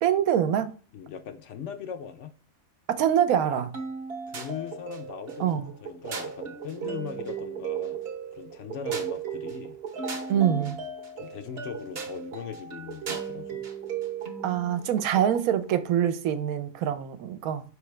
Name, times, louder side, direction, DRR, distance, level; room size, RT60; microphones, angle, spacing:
voice 1, 0.0-0.7 2.9-3.7 5.4-5.7 10.3-10.8 14.4-17.6, right 9 dB, 90° right, 1.1 m, -25 dB
voice 2, 0.9-2.3 4.3-8.0 8.3-9.8 10.3-10.8 11.2-13.7, left 7 dB, 65° left, 0.8 m, -39 dB
sound 1, 3.7-15.9, right 6 dB, 50° right, 0.9 m, -36 dB
4.8 x 3.3 x 3.1 m
omnidirectional pair, 1.5 m